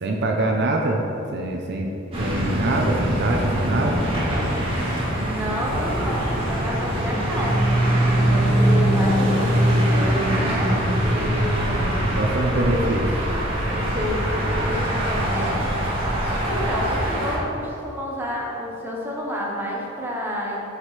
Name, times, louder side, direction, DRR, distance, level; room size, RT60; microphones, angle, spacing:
voice 1, 0.0-1.0 1.3-1.9 2.2-4.0 8.2-8.6 12.2-13.0, right 2 dB, 55° right, 1 dB, 0.6 m, -24 dB
sound 1, 2.1-17.4, right 1 dB, 30° right, 1.6 m, -22 dB
voice 2, 5.1-7.8 8.3-12.0 12.5-12.9 13.7-16.0 16.4-20.7, left 1 dB, 10° right, -4 dB, 1.1 m, -30 dB
9.8 x 5.0 x 3.3 m, 2.8 s
head